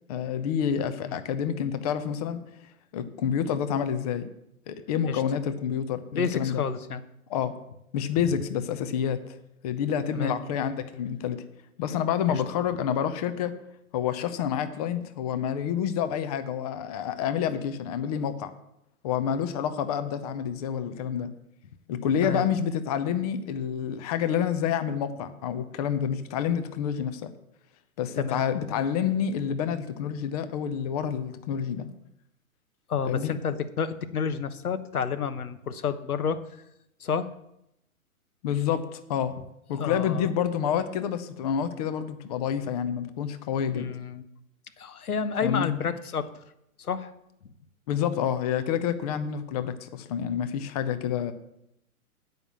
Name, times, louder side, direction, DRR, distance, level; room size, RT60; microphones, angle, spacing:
voice 1, 0.1-2.4 2.9-4.3 4.7-6.6 7.3-7.5 7.9-9.4 9.6-11.4 11.8-13.5 13.9-18.5 19.0-21.3 21.9-27.3 28.0-31.9 33.0-33.3 38.4-39.3 39.7-43.9 45.4-45.7 47.9-51.3, left 8 dB, 25° left, 10 dB, 0.6 m, -28 dB
voice 2, 6.1-7.0 10.1-10.4 12.3-12.4 22.2-22.4 28.2-28.5 32.9-36.4 37.0-37.3 39.8-40.3 43.7-44.2 44.8-46.3 46.8-47.1, left 6 dB, 80° left, 12 dB, 1.0 m, -30 dB
9.1 x 5.6 x 7.4 m, 0.81 s
hypercardioid pair, 130°, 44 cm